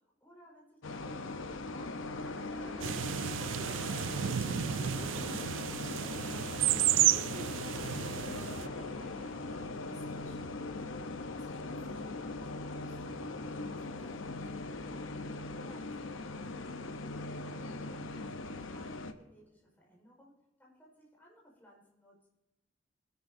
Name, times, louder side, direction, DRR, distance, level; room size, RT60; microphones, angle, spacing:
voice 1, 0.0-2.6 6.8-6.9 15.3-20.3 20.6-22.3, equal, 10° left, -4 dB, 4.6 m, -60 dB
sound 1, 0.8-19.1, left 2 dB, 85° left, 0.8 m, -40 dB
sound 2, 2.2-9.7, right 1 dB, 85° right, 3.8 m, -50 dB
sound 3, 2.8-8.7, right 12 dB, 70° right, 0.4 m, -32 dB
voice 2, 9.6-14.6, left 1 dB, 35° left, -3 dB, 1.6 m, -58 dB
23.5 x 10.0 x 2.7 m, 1.0 s
head